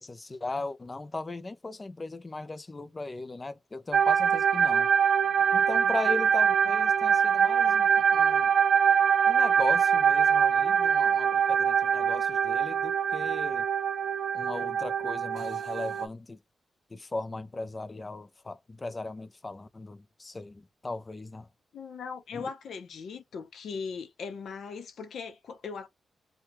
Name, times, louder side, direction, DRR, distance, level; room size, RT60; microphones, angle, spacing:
voice 1, 0.0-4.9 5.5-8.5 9.3-13.7 14.3-16.4 16.9-21.5 22.3-22.5, left 2 dB, 25° left, 0.5 m, -38 dB
sound 1, 3.9-16.1, right 7 dB, 65° right, 0.4 m, -24 dB
voice 2, 21.7-25.9, left 5 dB, 75° left, 0.7 m, -39 dB
2.9 x 2.2 x 3.0 m
wide cardioid pair, 110°, 0 cm